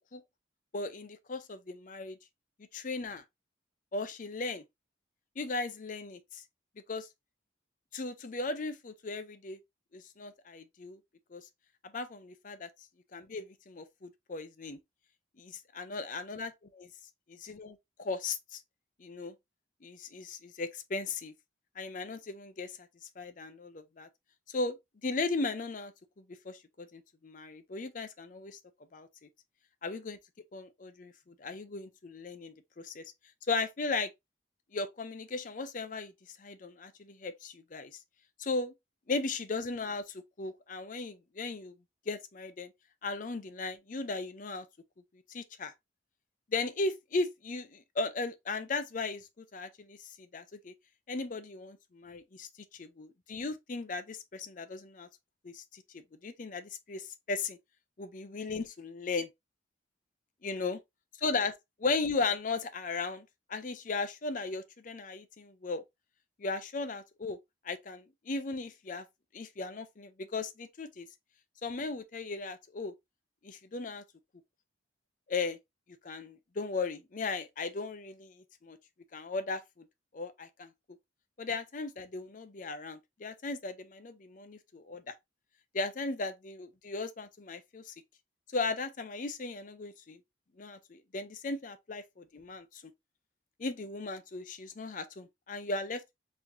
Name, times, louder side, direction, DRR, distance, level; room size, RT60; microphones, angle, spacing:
voice 1, 0.7-2.2 2.7-3.2 3.9-4.6 5.4-6.4 6.9-7.1 7.9-9.6 9.9-11.0 11.3-11.5 11.9-12.7 13.1-14.8 15.4-16.9 17.3-18.6 19.0-19.3 19.8-21.3 21.8-22.8 23.2-24.1 24.5-24.8 25.0-25.9 26.2-28.6 28.9-29.1 29.8-30.2 30.5-33.0 33.5-34.1 34.7-36.1 36.4-37.9 38.4-38.7 39.1-41.7 42.1-42.7 43.0-44.7 45.3-45.7 46.5-50.7 51.1-55.1 55.4-57.6 58.0-59.3 60.4-60.8 61.2-61.5 61.8-65.8 66.4-67.4 67.6-69.0 69.3-71.1 71.6-72.9 73.4-74.0 75.3-75.6 76.0-78.8 79.1-79.9 80.1-80.7 81.4-85.1 85.7-87.9 88.5-90.2 90.6-92.8 93.6-96.0, left 3 dB, 40° left, 0.5 m, -37 dB
4.1 x 2.9 x 2.6 m
head